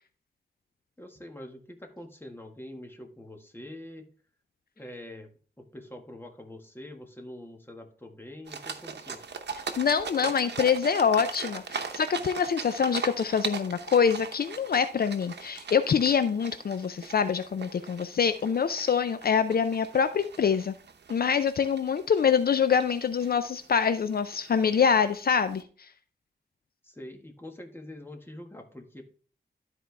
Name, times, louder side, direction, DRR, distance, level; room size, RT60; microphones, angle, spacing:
voice 1, 1.0-4.1 4.8-5.3 5.7-9.2 12.2-12.3 26.8-29.0, left 1 dB, 15° left, 3 dB, 1.6 m, -44 dB
sound 1, 8.5-25.6, right 5 dB, 80° right, 0.9 m, -40 dB
voice 2, 9.8-20.7 21.1-25.6, left 6 dB, 65° left, 11 dB, 0.5 m, -25 dB
12.5 x 4.5 x 3.4 m, 0.41 s
wide cardioid pair, 85°, 17 cm